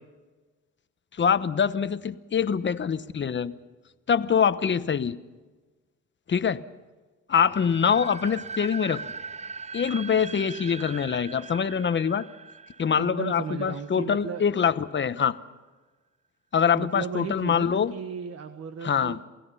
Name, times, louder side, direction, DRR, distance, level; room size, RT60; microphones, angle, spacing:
voice 1, 1.2-3.5 4.1-5.2 6.3-6.6 7.3-9.0 9.7-12.2 12.8-15.4 16.5-17.9 18.8-19.2, left 7 dB, 40° left, 13 dB, 1.1 m, -24 dB
sound 1, 7.5-14.3, right 4 dB, 25° right, 0.5 m, -40 dB
voice 2, 13.0-14.4 16.7-19.3, right 6 dB, 55° right, 8 dB, 1.4 m, -35 dB
28.0 x 17.0 x 5.6 m, 1.3 s
cardioid pair, 90°, 30 cm